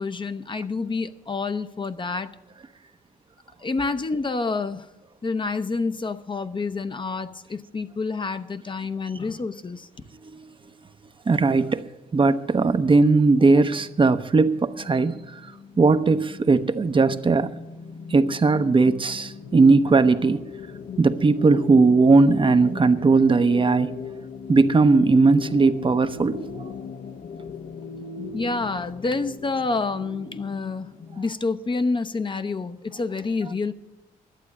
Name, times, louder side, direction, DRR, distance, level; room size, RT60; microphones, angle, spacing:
voice 1, 0.0-2.4 3.6-4.9 5.2-9.9 19.4-19.6 28.3-33.7, left 3 dB, 30° left, 10 dB, 0.7 m, -28 dB
voice 2, 11.3-11.8 12.1-15.2 15.8-17.5 18.1-20.4 21.0-23.9 24.5-26.4, right 3 dB, 35° right, 10 dB, 0.7 m, -18 dB
sound 1, 14.7-31.2, left 5 dB, 60° left, 0.8 m, -39 dB
11.5 x 8.0 x 8.6 m, 1.0 s
supercardioid pair, 60°, 16 cm